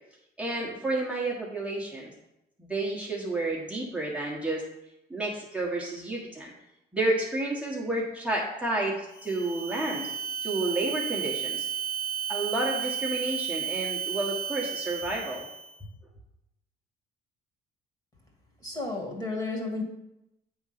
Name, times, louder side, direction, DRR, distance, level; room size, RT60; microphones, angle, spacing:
voice 1, 0.4-2.1 2.6-4.6 5.1-6.5 6.9-10.1 10.4-11.6 12.3-15.4, right 2 dB, 5° right, -5 dB, 1.4 m, -30 dB
sound 1, 9.1-15.7, right 6 dB, 55° left, 2.5 m, -33 dB
voice 2, 18.6-19.8, left 3 dB, 25° left, 1 dB, 2.0 m, -32 dB
7.9 x 3.8 x 5.9 m, 0.90 s
cardioid pair, 110°, 17 cm